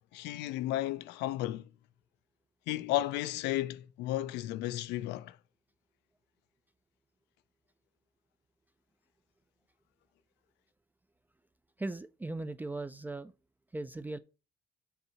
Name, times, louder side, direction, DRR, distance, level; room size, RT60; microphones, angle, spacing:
voice 1, 0.1-1.6 2.7-5.4, left 14 dB, 90° left, 0.5 m, -33 dB
voice 2, 11.8-13.3 13.7-14.2, right 2 dB, 10° right, 0.3 m, -38 dB
8.1 x 2.7 x 5.6 m
cardioid pair, 110°, 17 cm